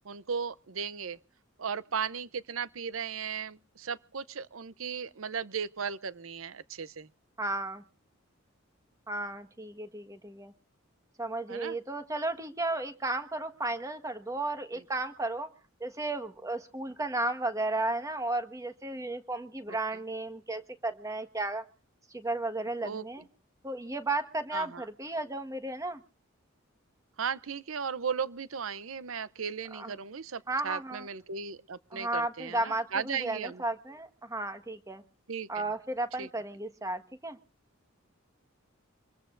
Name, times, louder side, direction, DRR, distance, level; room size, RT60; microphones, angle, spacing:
voice 1, 0.0-1.2 1.6-7.1 11.5-11.8 19.7-19.8 22.8-23.0 24.5-24.8 27.2-33.6 35.3-35.6 36.2-36.3, right 6 dB, 85° right, 0.7 m, -36 dB
voice 2, 7.4-7.8 9.1-10.5 11.2-15.5 15.8-21.6 22.1-23.2 23.6-26.0 29.7-29.9 30.5-31.1 31.9-35.0 35.5-37.4, right 2 dB, 15° right, 1.4 m, -34 dB
25.5 x 21.0 x 2.6 m
head